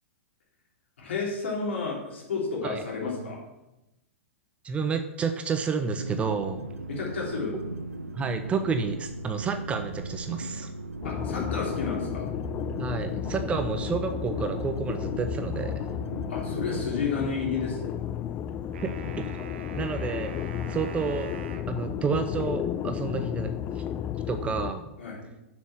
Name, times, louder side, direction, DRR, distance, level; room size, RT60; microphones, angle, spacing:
voice 1, 1.0-3.4 6.9-7.5 11.0-12.3 16.3-17.9 25.0-25.2, left 4 dB, 60° left, -3 dB, 3.5 m, -31 dB
voice 2, 4.6-6.7 8.1-10.7 12.8-15.8 18.8-19.3 19.7-20.3 20.7-21.3 21.7-23.8 24.3-24.8, right 5 dB, 15° right, 8 dB, 0.6 m, -30 dB
sound 1, 6.0-16.8, right 2 dB, 85° right, 0.5 m, -38 dB
sound 2, 11.0-24.7, left 9 dB, 25° left, 0.4 m, -33 dB
sound 3, 18.7-21.7, right 6 dB, 55° right, 0.9 m, -43 dB
7.3 x 6.2 x 7.1 m, 0.94 s
figure-of-eight pair, 105°, 7 cm